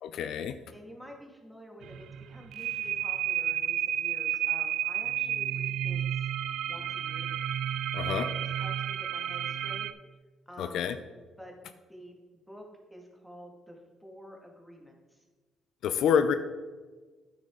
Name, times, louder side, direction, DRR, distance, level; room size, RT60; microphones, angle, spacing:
voice 1, 0.0-0.5 7.9-8.3 10.6-11.0 15.8-16.3, left 7 dB, 75° left, 10 dB, 0.5 m, -27 dB
voice 2, 0.7-6.3 6.7-7.3 8.0-9.9 10.5-10.9 11.4-11.6 11.9-12.2 12.5-15.2, equal, ahead, 0 dB, 2.2 m, -49 dB
sound 1, 1.8-9.9, right 10 dB, 75° right, 0.4 m, -31 dB
9.6 x 8.1 x 3.9 m, 1.3 s
cardioid pair, 95°, 0 cm